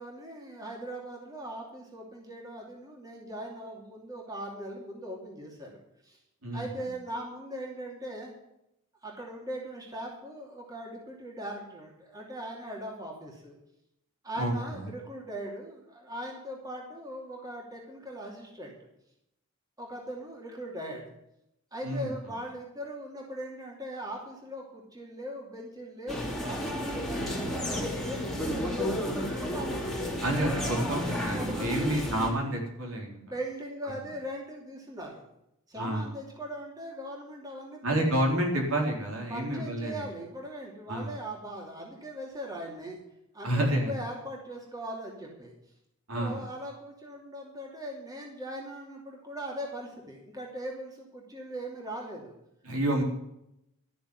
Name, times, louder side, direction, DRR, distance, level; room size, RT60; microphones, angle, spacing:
voice 1, 0.0-6.2 6.5-8.3 9.0-13.6 14.2-18.8 19.8-21.1 21.7-30.0 30.7-31.1 31.3-32.0 33.2-35.2 35.7-37.8 39.3-43.0 43.3-45.5 46.1-52.3, right 1 dB, 15° right, -1 dB, 2.7 m, -40 dB
voice 2, 14.4-14.9 21.8-22.1 30.2-33.2 35.7-36.1 37.8-40.1 40.9-41.1 43.4-43.9 46.1-46.4 52.6-53.0, right 1 dB, 75° right, 0 dB, 3.9 m, -29 dB
sound 1, 26.1-32.3, left 1 dB, ahead, 2.8 m, -32 dB
13.0 x 7.0 x 9.7 m, 0.82 s
head